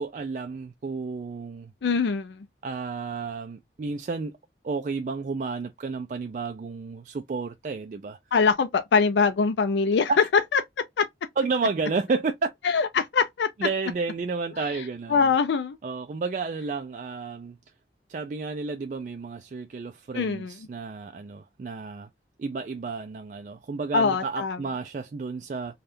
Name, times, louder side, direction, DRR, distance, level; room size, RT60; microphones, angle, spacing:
voice 1, 0.0-1.7 2.6-4.4 4.6-8.2 10.1-10.2 11.4-12.5 13.6-15.3 15.8-17.6 18.1-22.1 22.4-25.8, right 4 dB, 45° right, 0.3 m, -31 dB
voice 2, 1.8-2.5 8.3-10.1 10.5-10.6 11.0-11.1 12.6-13.5 14.7-14.8 15.1-15.8 20.1-20.5 23.9-24.6, left 5 dB, 80° left, 0.4 m, -23 dB
3.4 x 2.3 x 2.6 m
head